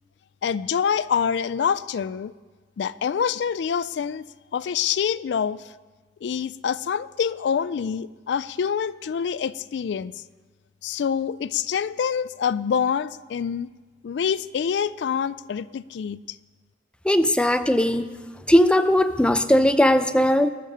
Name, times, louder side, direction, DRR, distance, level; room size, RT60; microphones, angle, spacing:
voice 1, 0.4-2.3 2.8-4.2 4.5-5.7 6.2-10.2 10.8-13.7 14.0-16.4, left 7 dB, 70° left, 17 dB, 0.3 m, -26 dB
voice 2, 17.0-18.0 18.5-20.5, left 1 dB, 5° left, 10 dB, 0.5 m, -18 dB
19.0 x 6.7 x 6.6 m, 1.4 s
head